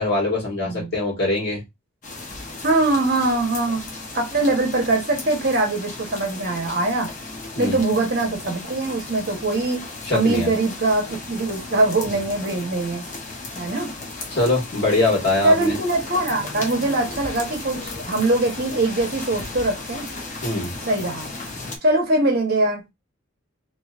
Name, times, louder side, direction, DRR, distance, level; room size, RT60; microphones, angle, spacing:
voice 1, 0.0-1.6 7.5-7.8 10.0-10.5 14.3-15.7 20.4-20.7, left 2 dB, 50° left, 1.6 m, -22 dB
voice 2, 0.5-0.9 2.6-3.8 4.1-7.1 7.6-9.8 10.1-13.0 13.6-13.9 15.4-20.1 20.8-21.3 21.8-22.8, right 2 dB, 45° right, 1.1 m, -22 dB
sound 1, 2.0-21.8, left 3 dB, 35° left, 0.7 m, -35 dB
3.0 x 2.8 x 2.4 m
head